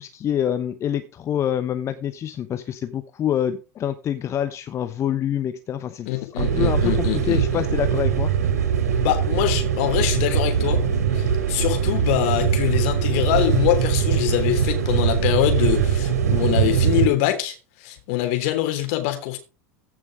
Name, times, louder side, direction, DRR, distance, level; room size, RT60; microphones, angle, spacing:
voice 1, 0.0-8.3, left 9 dB, 35° left, 1.0 m, -26 dB
voice 2, 6.0-7.6 9.0-10.8 11.1-19.4, left 15 dB, 60° left, 3.3 m, -24 dB
sound 1, 6.4-17.1, right 7 dB, 75° right, 2.6 m, -21 dB
15.5 x 6.2 x 5.0 m
hypercardioid pair, 85°, 9 cm